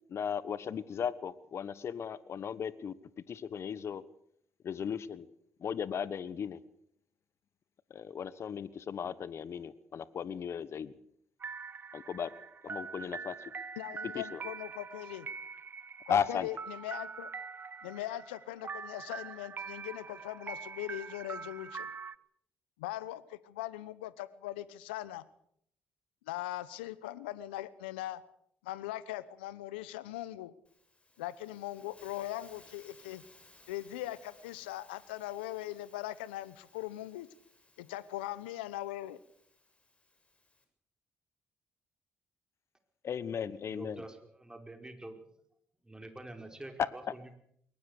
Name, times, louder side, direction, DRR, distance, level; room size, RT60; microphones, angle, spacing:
voice 1, 0.1-2.9 3.3-4.0 4.6-5.3 5.6-6.6 7.9-10.9 11.9-12.3 12.6-13.3 14.1-14.4 16.1-16.5 43.0-44.0, left 7 dB, 55° left, 17 dB, 1.2 m, -36 dB
sound 1, 11.4-22.1, right 5 dB, 40° right, 1.1 m, -44 dB
voice 2, 13.8-15.3 16.1-17.3 17.8-21.9 22.8-25.3 26.3-28.2 28.6-30.5 31.2-33.2 33.7-37.3 37.8-39.2, left 15 dB, 90° left, 17 dB, 0.9 m, -40 dB
Hiss, 30.6-40.6, left 2 dB, 20° left, 7.2 m, -62 dB
voice 3, 43.7-45.2 45.8-47.4, right 1 dB, 15° right, 5 dB, 5.0 m, -47 dB
22.5 x 19.0 x 6.7 m, 0.69 s
hypercardioid pair, 50°, 5 cm